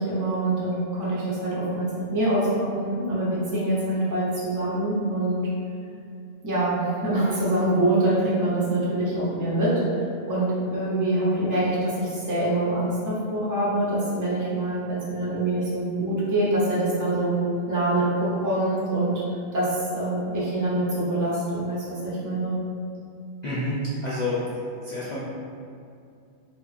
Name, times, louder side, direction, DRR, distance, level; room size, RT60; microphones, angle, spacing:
voice 1, 0.0-5.5 6.4-9.7 10.3-17.3 17.7-19.1 19.5-22.6, right 1 dB, 25° right, -8 dB, 0.4 m, -25 dB
voice 2, 23.4-24.5 24.8-25.2, left 1 dB, 85° left, -9 dB, 0.3 m, -28 dB
3.0 x 2.4 x 2.4 m, 2.4 s
omnidirectional pair, 1.3 m